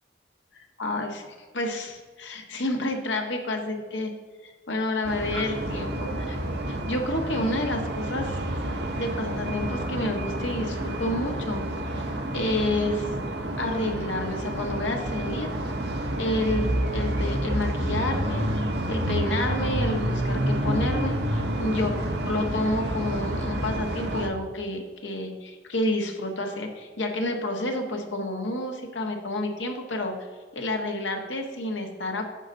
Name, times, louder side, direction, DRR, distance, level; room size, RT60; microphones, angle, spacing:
voice 1, 0.8-4.1 4.4-6.4 6.7-8.4 8.8-11.6 11.9-12.0 12.3-13.1 13.6-15.5 16.2-18.4 18.9-21.9 22.2-30.1 30.5-32.3, left 1 dB, 85° left, 3 dB, 1.4 m, -29 dB
sound 1, 5.0-24.3, right 1 dB, 65° right, 1.1 m, -29 dB
9.8 x 4.1 x 6.3 m, 1.5 s
head